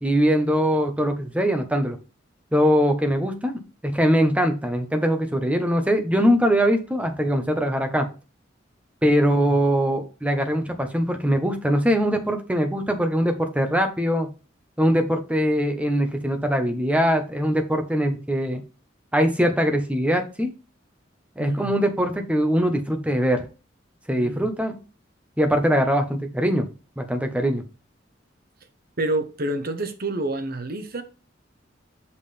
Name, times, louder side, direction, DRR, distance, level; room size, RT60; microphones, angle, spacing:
voice 1, 0.0-2.0 2.5-8.1 9.0-14.3 14.8-18.6 19.1-20.5 21.4-23.4 24.1-24.8 25.4-26.7 27.0-27.6, equal, 5° right, 1.2 m, -22 dB
voice 2, 21.4-21.7 24.2-24.5 29.0-31.0, right 2 dB, 55° right, 1.1 m, -28 dB
6.4 x 5.6 x 3.4 m
head